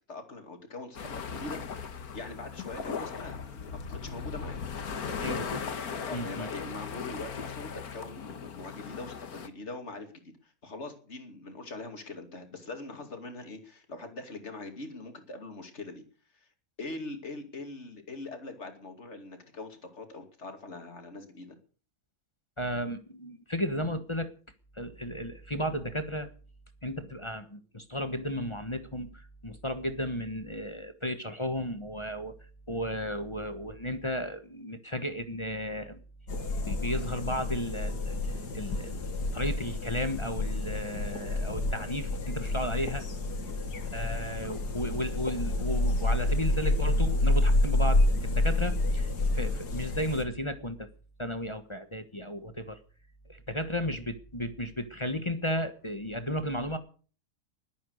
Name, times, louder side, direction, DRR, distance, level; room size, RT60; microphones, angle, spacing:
voice 1, 0.1-4.6 5.1-5.4 6.1-10.1 10.4-16.0 16.3-16.5 16.8-21.6 43.4-43.7, left 2 dB, 45° left, 6 dB, 2.8 m, -42 dB
sound 1, 0.9-9.5, left 6 dB, 65° left, 1.9 m, -38 dB
voice 2, 5.2-5.6 6.1-6.5 22.6-24.3 24.8-26.3 26.8-32.3 32.7-36.0 36.7-39.0 39.3-43.0 43.9-50.9 51.2-52.8 53.3-56.8, equal, 20° left, 8 dB, 1.2 m, -34 dB
sound 2, 36.3-50.2, left 2 dB, 85° left, 2.6 m, -29 dB
20.5 x 8.9 x 6.5 m, 0.41 s
omnidirectional pair, 1.7 m